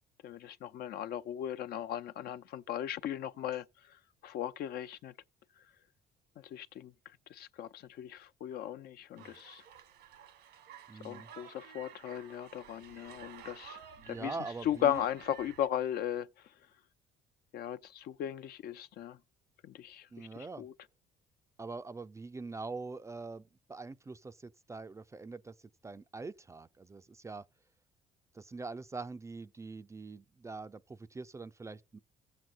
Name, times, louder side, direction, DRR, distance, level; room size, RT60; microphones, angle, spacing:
voice 1, 0.2-5.1 5.6-5.7 6.4-9.6 11.0-16.6 17.5-19.2 19.6-20.7, left 10 dB, 65° left, 0.6 m, -37 dB
sound 1, 9.2-15.7, right 10 dB, 85° right, 1.4 m, -53 dB
voice 2, 10.9-11.3 14.0-15.0 20.1-20.6 21.6-25.5 25.8-27.4 28.3-32.0, right 3 dB, 15° right, 0.4 m, -43 dB
15.5 x 7.7 x 2.4 m
cardioid pair, 110°, 17 cm